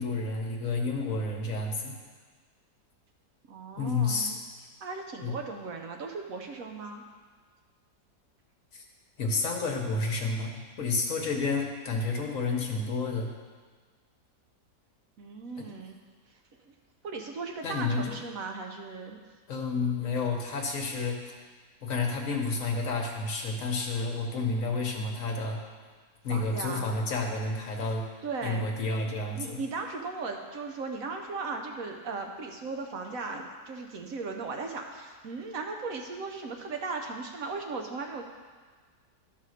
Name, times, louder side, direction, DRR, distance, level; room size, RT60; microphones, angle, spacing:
voice 1, 0.0-2.0 3.8-4.3 5.2-5.3 8.7-8.8 9.2-13.3 15.6-15.7 17.6-18.2 19.5-21.2 21.8-25.6 26.2-28.0 28.4-29.6, left 3 dB, 55° left, 1 dB, 1.3 m, -30 dB
voice 2, 3.5-4.4 4.8-7.0 15.2-16.0 16.6-16.7 17.0-19.2 26.3-26.9 28.2-28.7 29.3-38.2, right 4 dB, 60° right, 3 dB, 1.0 m, -37 dB
12.0 x 4.1 x 6.4 m, 1.5 s
omnidirectional pair, 1.8 m